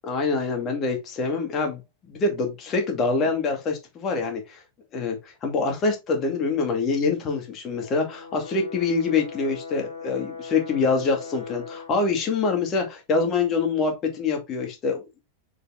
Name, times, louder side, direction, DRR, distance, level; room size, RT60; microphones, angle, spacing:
voice 1, 0.0-1.8 2.1-4.6 4.9-15.0, left 4 dB, 35° left, 2.3 m, -25 dB
Brass instrument, 7.8-12.0, left 5 dB, 90° left, 1.7 m, -39 dB
6.5 x 5.0 x 3.6 m
hypercardioid pair, 95°, 0 cm